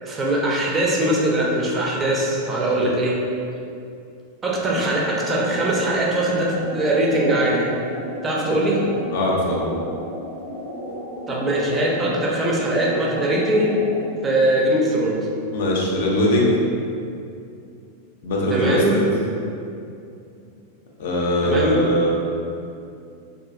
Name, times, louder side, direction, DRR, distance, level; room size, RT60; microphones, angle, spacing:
voice 1, 0.0-3.2 4.4-7.7 8.2-8.8 11.3-13.8 14.2-15.3 18.5-19.0 21.4-21.8, right 1 dB, 20° right, -3 dB, 0.4 m, -21 dB
sound 1, 4.5-14.1, equal, 85° right, 0.5 m, -34 dB
voice 2, 9.1-9.7 15.5-16.5 18.2-19.2 21.0-22.1, left 1 dB, 55° left, -3 dB, 0.5 m, -21 dB
2.6 x 2.5 x 2.4 m, 2.5 s
figure-of-eight pair, 90°, 0 cm